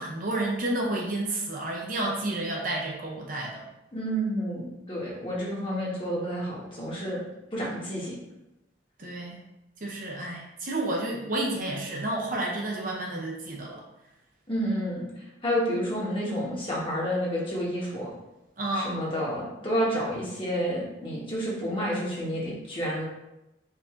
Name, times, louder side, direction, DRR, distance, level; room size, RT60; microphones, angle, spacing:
voice 1, 0.0-3.6 9.0-9.4 9.8-13.8 18.6-19.0, right 1 dB, 45° right, -1 dB, 0.7 m, -30 dB
voice 2, 3.9-7.2 7.5-8.2 14.5-15.1 15.4-18.1 18.7-23.0, equal, 25° left, -5 dB, 1.2 m, -30 dB
4.7 x 2.6 x 3.6 m, 0.92 s
head